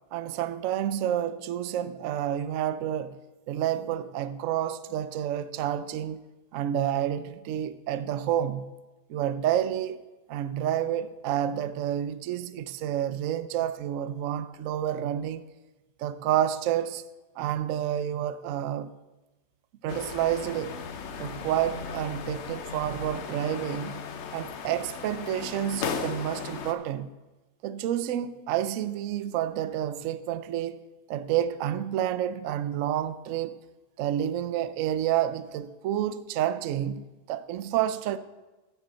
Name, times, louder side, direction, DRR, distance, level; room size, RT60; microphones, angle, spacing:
voice 1, 0.1-3.2 3.5-6.2 6.5-8.7 9.1-10.0 10.3-15.5 16.0-17.0 17.4-18.9 19.8-20.8 21.2-27.1 27.6-30.8 31.1-33.6 34.0-38.2, right 11 dB, 70° right, 0.8 m, -29 dB
sound 1, 19.9-26.7, left 6 dB, 55° left, 0.8 m, -37 dB
15.0 x 7.0 x 4.1 m
omnidirectional pair, 1.8 m